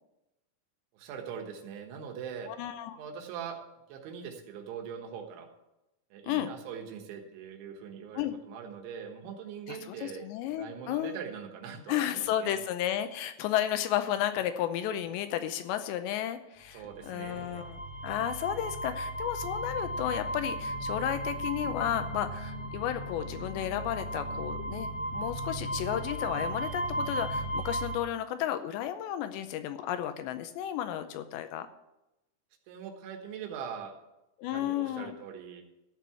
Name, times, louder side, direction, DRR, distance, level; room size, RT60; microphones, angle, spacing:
voice 1, 0.9-2.5 2.9-3.6 3.9-5.5 6.1-12.5 16.7-17.7 32.7-33.9 34.4-35.6, right 7 dB, 90° right, 3 dB, 3.8 m, -42 dB
voice 2, 2.5-3.0 6.2-6.5 8.2-8.3 9.7-11.2 11.9-31.7 34.4-35.2, left 11 dB, 85° left, 9 dB, 2.7 m, -33 dB
sound 1, 16.9-28.0, right 1 dB, 20° left, 1.3 m, -35 dB
13.5 x 4.7 x 8.6 m, 0.93 s
omnidirectional pair, 5.3 m